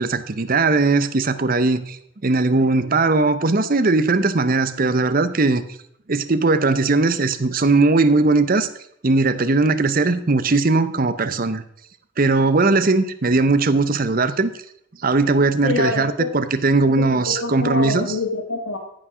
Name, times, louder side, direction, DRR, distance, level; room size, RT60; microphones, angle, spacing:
voice 1, 0.0-5.6 6.1-8.7 9.0-11.6 12.2-14.5 15.0-18.1, right 3 dB, 45° right, 12 dB, 0.7 m, -19 dB
voice 2, 15.6-16.3 17.0-18.8, left 3 dB, 80° left, 0 dB, 1.6 m, -26 dB
14.0 x 6.3 x 6.1 m, 0.70 s
head